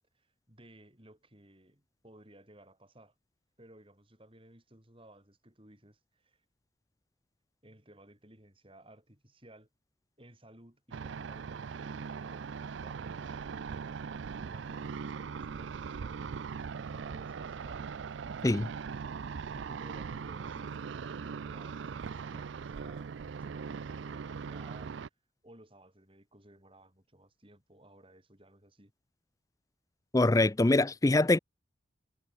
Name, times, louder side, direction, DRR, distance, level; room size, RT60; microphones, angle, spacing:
voice 1, 0.1-3.1 3.6-6.4 7.6-9.7 10.2-13.8 14.3-18.4 19.5-25.0 25.4-28.9, right 1 dB, 30° right, 6.2 m, -57 dB
sound 1, 10.9-25.1, right 6 dB, 75° right, 0.4 m, -40 dB
voice 2, 30.1-31.4, left 2 dB, 15° left, 0.4 m, -24 dB
head